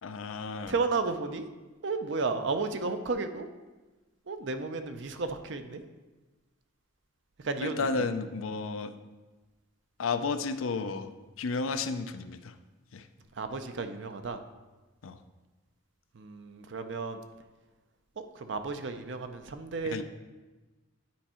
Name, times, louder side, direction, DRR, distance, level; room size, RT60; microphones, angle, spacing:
voice 1, 0.0-0.8 7.6-8.9 10.0-11.1 11.4-12.6 12.9-13.1 15.0-15.2 19.8-20.0, left 4 dB, 85° left, 10 dB, 0.5 m, -32 dB
voice 2, 0.7-1.5 1.8-3.5 4.3-5.8 7.4-7.8 13.4-14.4 16.1-17.2 18.2-20.0, right 4 dB, 60° right, 8 dB, 0.6 m, -33 dB
10.5 x 4.5 x 4.3 m, 1.2 s
head